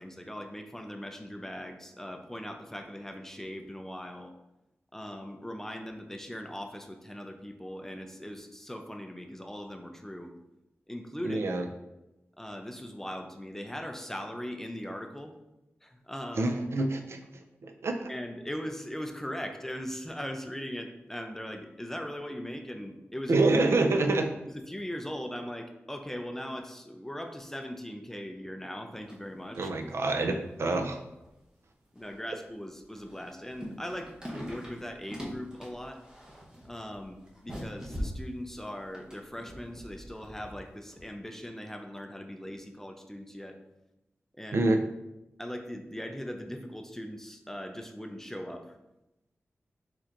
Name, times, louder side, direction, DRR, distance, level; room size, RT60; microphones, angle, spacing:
voice 1, 0.0-4.3 4.9-10.3 10.9-11.5 12.4-15.3 15.8-16.5 18.1-23.4 24.5-29.7 31.9-36.0 36.6-43.6 44.4-44.7 45.4-48.8, equal, 10° left, 5 dB, 0.4 m, -40 dB
voice 2, 11.2-11.7 16.4-17.2 17.6-18.1 23.3-24.3 29.5-31.0 44.5-44.8, right 2 dB, 75° right, 5 dB, 0.5 m, -26 dB
sound 1, 28.9-29.3 29.5-30.0 30.4-30.5 31.2-31.3 32.0-32.3 32.8-40.6 40.9-41.0, equal, 15° right, 1.0 m, -42 dB
4.4 x 4.3 x 2.5 m, 0.92 s
wide cardioid pair, 110°, 4 cm